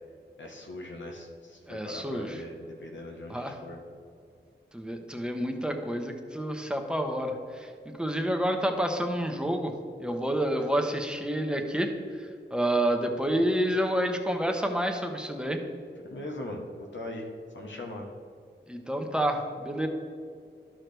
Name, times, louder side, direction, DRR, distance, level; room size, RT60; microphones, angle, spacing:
voice 1, 0.4-3.8 16.1-17.3 17.5-18.1, left 1 dB, 80° left, 0 dB, 1.1 m, -40 dB
voice 2, 1.7-2.4 3.3-3.6 4.7-9.7 10.0-11.9 12.5-15.6 18.7-19.9, right 1 dB, 5° right, 3 dB, 1.0 m, -29 dB
11.5 x 6.2 x 3.4 m, 2.3 s
wide cardioid pair, 55°, 19 cm